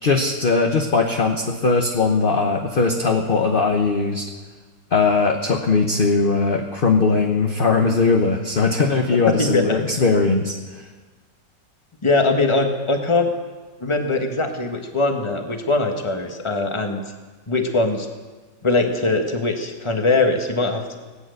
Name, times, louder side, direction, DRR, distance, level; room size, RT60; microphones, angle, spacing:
voice 1, 0.0-4.3 4.9-10.8, left 4 dB, 35° left, 3 dB, 1.1 m, -19 dB
voice 2, 9.3-10.0 12.0-13.3 13.8-17.0 17.5-18.1 18.6-21.0, left 3 dB, 20° left, 4 dB, 1.3 m, -21 dB
19.5 x 9.4 x 7.9 m, 1.3 s
omnidirectional pair, 1.9 m